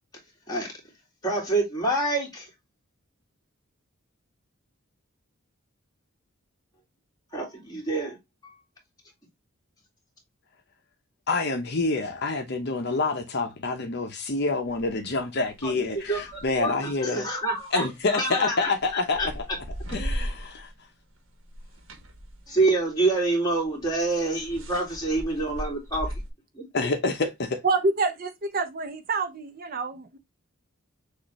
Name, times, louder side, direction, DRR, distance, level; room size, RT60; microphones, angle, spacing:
voice 1, 1.2-2.5 7.3-8.2 8.4-8.5 15.6-15.7 16.1-19.3 22.5-26.1 26.5-26.7, right 2 dB, 20° left, 2.3 m, -27 dB
voice 2, 11.3-17.3 17.7-19.5 19.9-20.7 26.7-27.6, left 3 dB, 50° left, 0.8 m, -27 dB
sound 1, 14.6-14.9 15.4-16.6 17.5-20.8 21.1-26.3, equal, 65° right, 1.2 m, -38 dB
voice 3, 27.6-30.2, right 3 dB, 45° right, 0.6 m, -27 dB
6.5 x 2.5 x 3.0 m
head